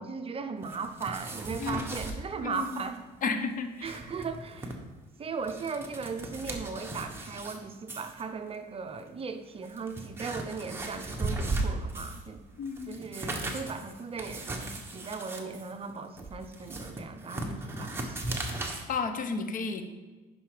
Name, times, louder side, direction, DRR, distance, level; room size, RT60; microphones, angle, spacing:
voice 1, 0.0-3.1 3.8-4.7 5.2-12.4 12.9-18.4, right 5 dB, 35° right, 7 dB, 0.7 m, -37 dB
sound 1, 0.6-2.2 2.5-2.9 3.1-3.2 3.6-4.7 5.3-7.6 7.9-8.2 9.0-9.1 9.6-12.3 12.6-18.8, right 2 dB, 15° right, 1.4 m, -37 dB
voice 2, 1.6-2.0 2.4-2.9 3.2-4.0 12.6-13.0 18.9-19.8, left 4 dB, 55° left, 8 dB, 0.9 m, -33 dB
9.8 x 5.8 x 5.0 m, 1.3 s
cardioid pair, 110°, 17 cm